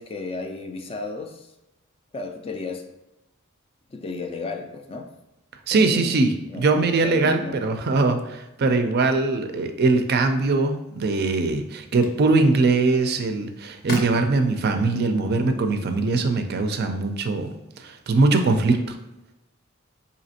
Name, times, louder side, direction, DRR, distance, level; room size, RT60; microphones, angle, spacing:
voice 1, 0.0-1.5 2.1-2.8 3.9-5.1 5.7-6.2 6.5-7.6, left 3 dB, 30° left, 0.3 m, -34 dB
voice 2, 5.7-17.5 17.8-18.9, right 3 dB, 50° right, 0.4 m, -21 dB
sound 1, 11.0-17.2, left 1 dB, 45° left, 0.7 m, -40 dB
4.1 x 2.8 x 2.7 m
head